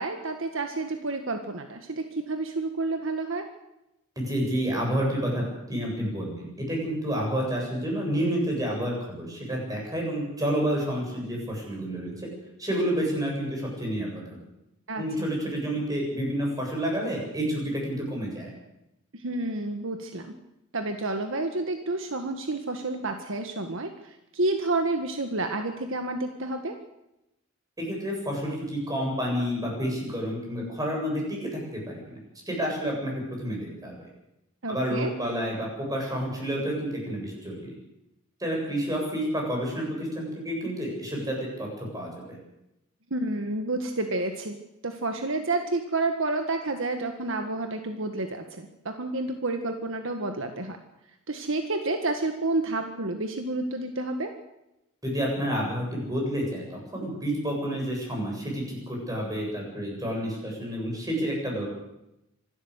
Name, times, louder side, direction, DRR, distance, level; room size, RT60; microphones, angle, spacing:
voice 1, 0.0-3.5 14.9-15.3 19.1-20.3 20.7-26.7 34.6-35.1 43.1-44.6 44.8-50.8 51.3-54.3, right 2 dB, 65° right, 6 dB, 1.7 m, -30 dB
voice 2, 4.2-12.1 12.6-14.4 15.0-18.5 27.8-32.2 32.5-33.9 34.7-37.7 38.4-42.4 55.0-61.7, equal, 15° right, -1 dB, 7.9 m, -29 dB
25.5 x 13.0 x 8.3 m, 0.89 s
head